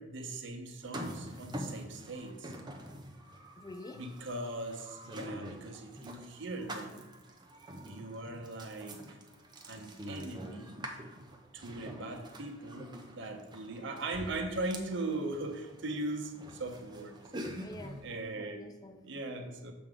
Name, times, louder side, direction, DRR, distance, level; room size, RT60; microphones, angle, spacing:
voice 1, 0.0-2.6 3.9-7.1 7.8-9.2 9.7-10.8 11.5-17.2 18.0-18.7 19.0-19.7, right 2 dB, 55° right, 0.8 m, -39 dB
sound 1, 0.8-18.1, equal, 20° right, 0.6 m, -46 dB
voice 2, 3.6-4.1 11.8-12.2 17.6-19.1, left 2 dB, 15° left, 0.3 m, -49 dB
7.0 x 5.1 x 3.7 m
head